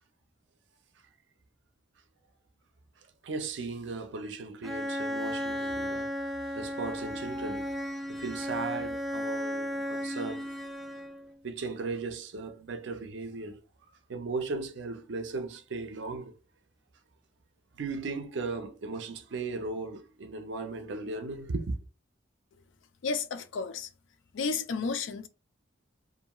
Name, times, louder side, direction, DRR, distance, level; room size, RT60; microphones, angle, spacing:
voice 1, 3.2-7.8 8.1-10.5 11.4-13.6 14.1-16.3 17.8-21.8, right 3 dB, 65° right, 0.5 m, -37 dB
Bowed string instrument, 4.6-11.3, equal, ahead, 0.3 m, -34 dB
voice 2, 23.0-23.9 24.3-25.3, left 4 dB, 80° left, 0.4 m, -32 dB
2.5 x 2.3 x 2.9 m
head